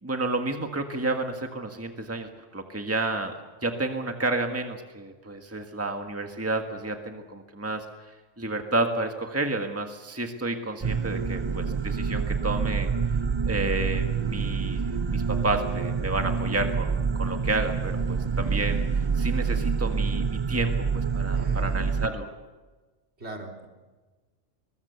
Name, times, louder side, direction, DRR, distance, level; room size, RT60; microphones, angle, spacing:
voice 1, 0.0-3.3 3.6-12.9 13.5-22.3, right 2 dB, 10° right, 4 dB, 1.7 m, -31 dB
sound 1, 10.8-22.1, right 5 dB, 30° right, 0.6 m, -27 dB
voice 2, 21.3-21.9 23.2-23.7, right 1 dB, 60° right, 1 dB, 3.8 m, -39 dB
23.0 x 20.5 x 7.1 m, 1.3 s
omnidirectional pair, 1.3 m